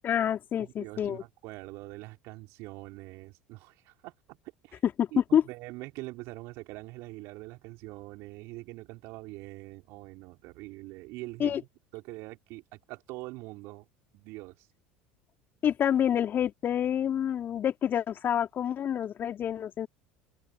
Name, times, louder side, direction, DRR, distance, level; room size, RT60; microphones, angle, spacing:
voice 1, 0.0-1.2 5.0-5.4 11.4-11.6 15.6-19.9, left 9 dB, 40° left, 2.5 m, -27 dB
voice 2, 0.6-4.4 4.6-4.8 5.1-13.9 14.1-14.7, right 22 dB, 60° right, 4.8 m, -44 dB
hypercardioid pair, 70°, 5 cm